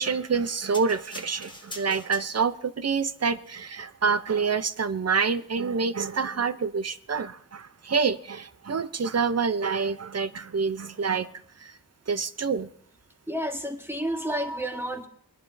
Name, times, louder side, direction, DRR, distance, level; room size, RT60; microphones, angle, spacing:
voice 1, 0.0-11.3 11.6-11.7 12.1-12.7, right 5 dB, 45° right, 14 dB, 0.5 m, -27 dB
sound 1, 0.7-2.7 3.4-3.5, left 1 dB, 10° left, 1.1 m, -43 dB
voice 2, 13.3-15.1, equal, 5° right, 4 dB, 1.2 m, -30 dB
23.5 x 11.0 x 2.6 m, 0.64 s
wide cardioid pair, 75°, 37 cm